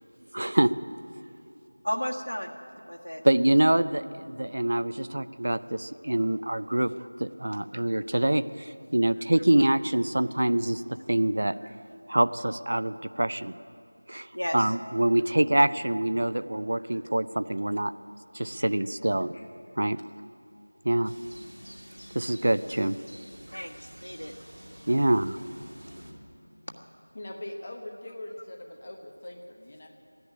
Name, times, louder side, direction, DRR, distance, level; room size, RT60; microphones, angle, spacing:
voice 1, 0.3-0.7 3.2-6.9 7.2-10.8 11.1-11.7 12.1-13.5 14.1-14.3 14.5-17.9 18.3-19.3 19.8-20.0 20.8-21.1 22.1-23.0 24.9-25.4, right 1 dB, 50° right, 14 dB, 0.5 m, -25 dB
voice 2, 1.8-2.6 2.9-3.2 14.3-14.7 19.9-20.0 23.5-24.3, equal, 85° left, 2 dB, 1.6 m, -33 dB
sound 1, 21.0-26.1, equal, 70° right, 2.7 m, -48 dB
voice 3, 27.1-29.9, left 1 dB, 25° left, 2 dB, 1.0 m, -42 dB
13.5 x 10.5 x 9.9 m, 2.5 s
figure-of-eight pair, 175°, 0 cm